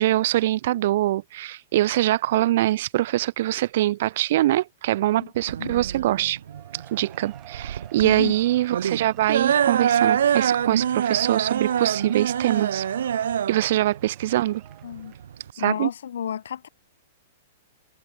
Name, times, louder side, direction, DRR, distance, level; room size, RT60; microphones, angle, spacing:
voice 1, 0.0-6.4 6.9-12.9 13.5-14.6 15.6-15.9, right 14 dB, 45° right, 0.4 m, -23 dB
sound 1, 5.5-15.5, right 9 dB, 90° right, 1.3 m, -25 dB
Cheering / Applause / Crowd, 6.4-15.4, right 18 dB, 20° right, 6.4 m, -49 dB
voice 2, 8.0-8.3 14.8-15.1 15.6-16.7, left 9 dB, 90° left, 1.1 m, -31 dB
supercardioid pair, 175°, 0 cm